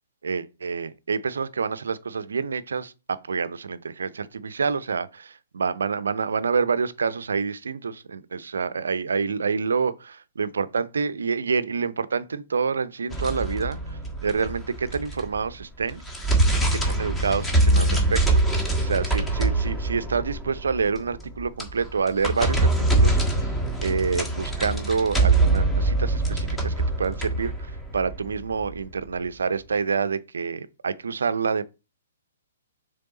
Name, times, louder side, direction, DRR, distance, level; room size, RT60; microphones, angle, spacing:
voice 1, 0.2-16.0 16.7-31.6, right 5 dB, 70° right, 0.6 m, -27 dB
sound 1, 13.1-15.5 15.8-28.8, right 2 dB, 10° left, 1.4 m, -23 dB
6.7 x 3.5 x 4.0 m
figure-of-eight pair, 120°, 0 cm